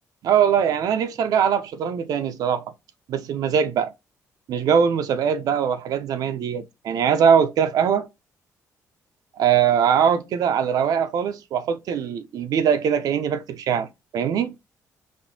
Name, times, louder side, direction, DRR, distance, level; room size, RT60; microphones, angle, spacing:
voice 1, 0.2-2.6 3.1-3.9 4.5-8.1 9.4-13.9 14.1-14.5, right 8 dB, 75° right, 0.6 m, -21 dB
4.3 x 2.6 x 2.7 m
cardioid pair, 90°, 7 cm